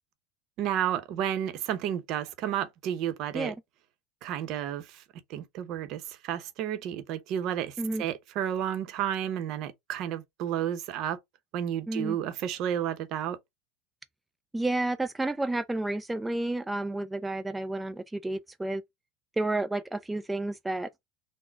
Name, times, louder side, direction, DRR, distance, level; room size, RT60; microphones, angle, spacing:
voice 1, 0.6-3.5 4.2-5.0 5.3-11.2 11.5-13.4, right 10 dB, 55° right, 0.7 m, -31 dB
voice 2, 14.5-18.8 19.4-20.9, right 2 dB, 10° right, 0.3 m, -31 dB
3.8 x 2.0 x 3.5 m
hypercardioid pair, 90°, 0 cm